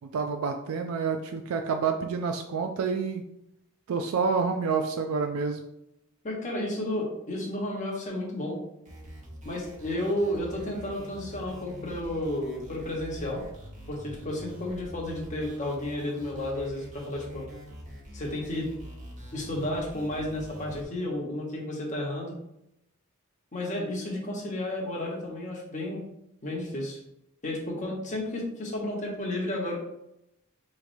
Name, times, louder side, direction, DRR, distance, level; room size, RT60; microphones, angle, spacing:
voice 1, 0.0-3.2 3.9-5.6, right 5 dB, 70° right, 5 dB, 0.3 m, -28 dB
voice 2, 6.2-8.6 9.4-13.4 13.9-17.4 18.1-18.7 19.3-22.4 23.5-26.1 26.4-27.0 27.4-29.8, left 1 dB, 35° left, -2 dB, 1.0 m, -32 dB
sound 1, 8.8-20.8, equal, 35° right, 1.0 m, -45 dB
4.7 x 3.1 x 2.6 m, 0.82 s
head